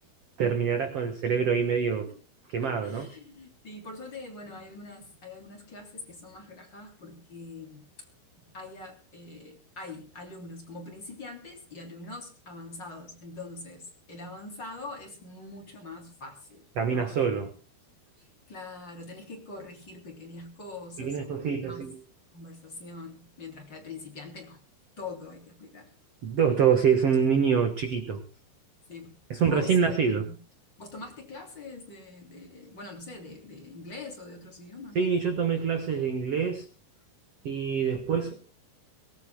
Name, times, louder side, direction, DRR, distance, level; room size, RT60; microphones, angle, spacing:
voice 1, 0.4-2.1 2.5-3.1 16.8-17.5 21.0-21.9 26.2-28.2 29.3-30.3 34.9-36.7 37.4-38.4, right 6 dB, 60° right, 7 dB, 1.6 m, -25 dB
voice 2, 2.6-7.9 8.5-17.2 18.2-21.3 21.6-21.9 22.3-24.6 25.0-25.9 28.9-30.3 30.8-35.1, left 3 dB, 30° left, 2 dB, 3.6 m, -44 dB
23.0 x 19.5 x 2.3 m, 0.37 s
omnidirectional pair, 4.8 m